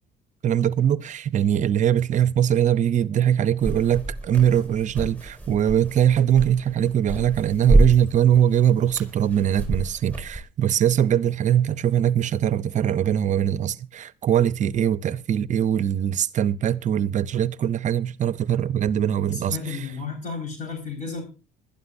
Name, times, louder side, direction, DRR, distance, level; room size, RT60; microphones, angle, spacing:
voice 1, 0.4-19.8, right 10 dB, 45° right, 0.6 m, -22 dB
sound 1, 3.6-10.4, right 2 dB, 10° left, 5.4 m, -27 dB
voice 2, 19.3-21.2, left 5 dB, 45° left, 4.7 m, -32 dB
21.0 x 12.0 x 2.6 m
cardioid pair, 110°, 17 cm